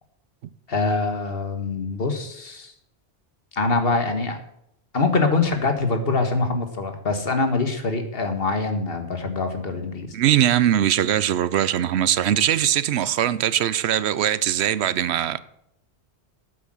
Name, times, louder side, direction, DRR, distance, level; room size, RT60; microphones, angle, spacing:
voice 1, 0.7-2.7 3.5-4.4 4.9-10.2, left 3 dB, 60° left, 1.7 m, -24 dB
voice 2, 10.1-15.4, right 11 dB, 75° right, 0.9 m, -21 dB
9.1 x 8.1 x 7.6 m
omnidirectional pair, 1.1 m